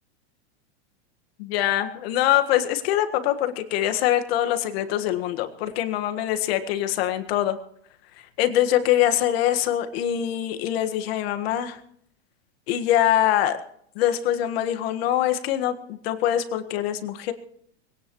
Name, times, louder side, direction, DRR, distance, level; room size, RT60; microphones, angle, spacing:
voice 1, 1.4-7.6 8.4-11.8 12.7-13.6 13.9-17.3, left 12 dB, 60° left, 8 dB, 1.7 m, -23 dB
21.5 x 17.5 x 3.1 m, 0.68 s
supercardioid pair, 140°, 34 cm